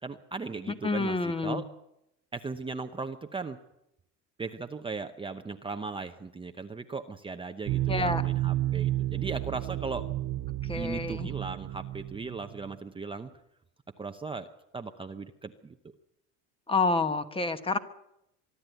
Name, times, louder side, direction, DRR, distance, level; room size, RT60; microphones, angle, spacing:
voice 1, 0.0-1.7 2.3-3.6 4.4-10.1 10.8-13.3 14.0-14.5 14.7-15.8, right 4 dB, 15° right, 6 dB, 0.8 m, -37 dB
voice 2, 0.8-1.6 7.9-8.2 10.6-11.3 16.7-17.8, left 3 dB, 15° left, 10 dB, 1.2 m, -28 dB
sound 1, 7.7-12.7, right 14 dB, 45° right, 0.8 m, -31 dB
24.0 x 12.5 x 9.2 m, 0.83 s
cardioid pair, 125°, 36 cm